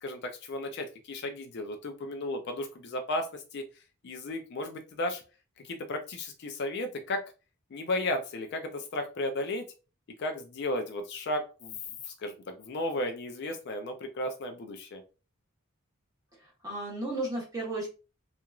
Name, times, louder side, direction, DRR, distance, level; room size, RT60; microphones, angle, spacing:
voice 1, 0.0-3.7 4.0-5.2 5.6-7.2 7.7-9.7 10.2-15.0, left 1 dB, 50° left, 6 dB, 0.4 m, -34 dB
voice 2, 16.4-17.9, right 2 dB, 15° right, -4 dB, 1.2 m, -34 dB
2.9 x 2.4 x 2.3 m, 0.33 s
head